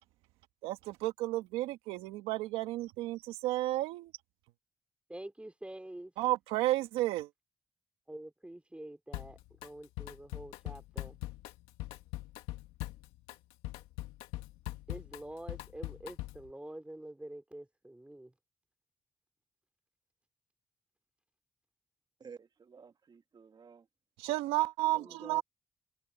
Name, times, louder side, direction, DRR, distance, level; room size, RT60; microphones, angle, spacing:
voice 1, 0.6-4.1 6.2-7.3 24.2-25.4, right 17 dB, 90° right, 1.7 m, -32 dB
voice 2, 5.1-6.1 8.1-11.2 14.9-18.3 24.9-25.4, right 1 dB, 10° right, 3.1 m, -47 dB
Drum kit, 9.1-9.7 10.0-16.5, left 16 dB, 90° left, 1.9 m, -42 dB
voice 3, 22.2-23.9, right 6 dB, 50° right, 2.3 m, -53 dB
hypercardioid pair, 45°, 9 cm